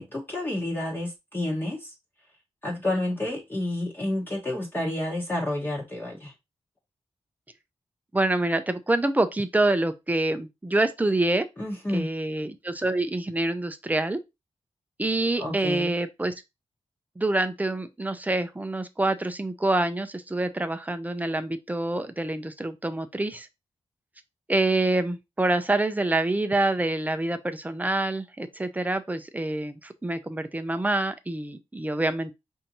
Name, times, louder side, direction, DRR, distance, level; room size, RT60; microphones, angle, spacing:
voice 1, 0.0-1.9 2.6-6.3 11.6-12.1 15.4-15.9, left 1 dB, 20° left, 1.0 m, -30 dB
voice 2, 8.1-11.4 11.9-14.2 15.0-16.3 17.2-23.5 24.5-32.3, right 2 dB, 15° right, 0.5 m, -26 dB
5.0 x 2.6 x 2.9 m
wide cardioid pair, 105°, 11 cm